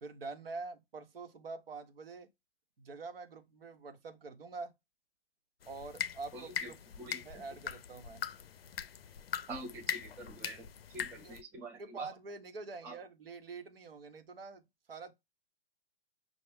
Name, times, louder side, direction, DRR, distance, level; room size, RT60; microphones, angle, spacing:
voice 1, 0.0-2.3 2.8-4.7 5.7-6.8 7.2-8.2 11.2-11.4 11.7-15.1, right 4 dB, 70° right, 1.0 m, -46 dB
sound 1, 5.6-11.4, left 8 dB, 75° left, 0.5 m, -41 dB
voice 2, 6.3-6.7 7.0-7.4 9.5-12.1 12.8-13.0, right 2 dB, 5° right, 0.4 m, -46 dB
5.9 x 2.3 x 3.4 m
figure-of-eight pair, 120°, 30 cm